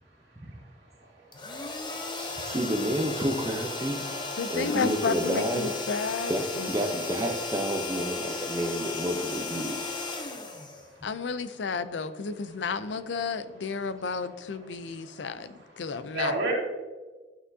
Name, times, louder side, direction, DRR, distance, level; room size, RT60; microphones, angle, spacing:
sound 1, 1.3-11.3, left 3 dB, 25° left, 0.8 m, -35 dB
voice 1, 2.2-4.0 4.5-5.8 6.3-9.9, equal, 20° right, 2 dB, 0.7 m, -30 dB
voice 2, 4.4-6.7 11.0-16.4, left 5 dB, 80° left, 13 dB, 0.5 m, -32 dB
voice 3, 14.6-16.5, right 2 dB, 70° right, -2 dB, 2.5 m, -34 dB
11.5 x 6.0 x 2.7 m, 1.3 s
head